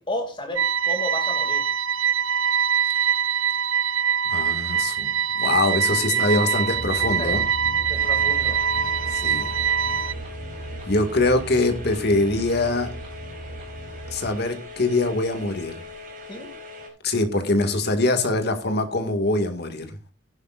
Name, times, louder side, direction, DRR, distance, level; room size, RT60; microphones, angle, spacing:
voice 1, 0.0-1.7 6.0-6.7 7.2-7.4 7.9-8.6 16.3-16.5, left 1 dB, 25° left, 2.3 m, -33 dB
sound 1, 0.6-10.1, right 8 dB, 75° right, 0.9 m, -23 dB
voice 2, 4.3-7.4 9.1-9.5 10.9-12.9 14.1-15.7 17.0-19.9, left 2 dB, 55° left, 2.1 m, -23 dB
sound 2, 6.7-14.3, right 2 dB, 30° right, 6.7 m, -37 dB
sound 3, 7.9-16.9, left 3 dB, 45° right, 4.8 m, -41 dB
15.0 x 11.0 x 2.5 m
head